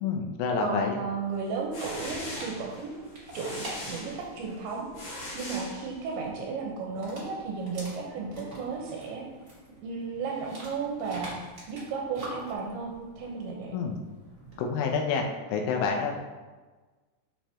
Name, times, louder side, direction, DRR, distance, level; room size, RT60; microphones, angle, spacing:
voice 1, 0.0-1.0 13.7-14.0 14.6-15.2 15.5-16.2, left 5 dB, 80° left, 2 dB, 3.4 m, -28 dB
voice 2, 0.6-3.0 3.3-9.2 9.8-11.4 11.7-13.7, right 4 dB, 75° right, -1 dB, 3.0 m, -34 dB
sound 1, 1.4-6.3, left 1 dB, 60° left, 2.0 m, -41 dB
Dog, 1.8-14.7, right 1 dB, 30° right, 1.6 m, -47 dB
10.5 x 6.8 x 3.0 m, 1.3 s
omnidirectional pair, 5.9 m